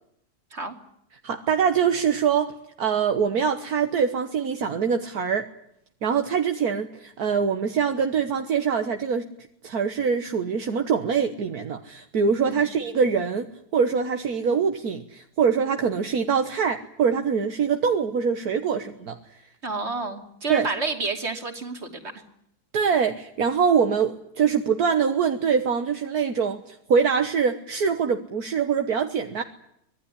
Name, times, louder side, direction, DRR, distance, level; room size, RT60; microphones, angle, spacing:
voice 1, 1.2-2.5 2.8-5.4 6.0-9.3 9.6-13.5 13.7-19.2 20.5-20.7 22.7-29.4, right 6 dB, 70° right, 6 dB, 1.7 m, -24 dB
voice 2, 19.6-22.1, right 3 dB, 45° right, 5 dB, 3.2 m, -30 dB
25.0 x 19.0 x 10.0 m, 0.75 s
omnidirectional pair, 1.7 m